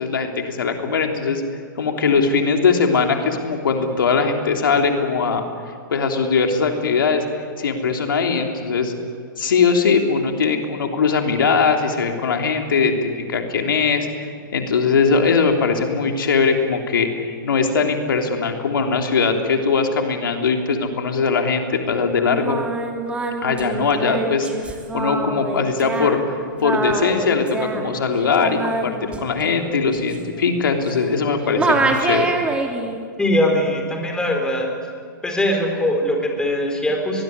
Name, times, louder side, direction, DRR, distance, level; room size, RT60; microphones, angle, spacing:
voice 1, 0.0-1.4 1.8-5.4 5.9-7.2 7.6-8.9 9.4-14.1 14.5-22.6 23.4-24.5 24.9-26.2 26.6-32.3, left 5 dB, 80° left, 3 dB, 3.3 m, -20 dB
Singing, 22.2-31.3 31.6-33.0, right 3 dB, 10° right, 2.9 m, -25 dB
voice 2, 33.2-34.7 35.2-37.2, left 1 dB, 5° left, 2 dB, 4.3 m, -21 dB
23.5 x 20.5 x 9.6 m, 2.1 s
hypercardioid pair, 130°, 11 cm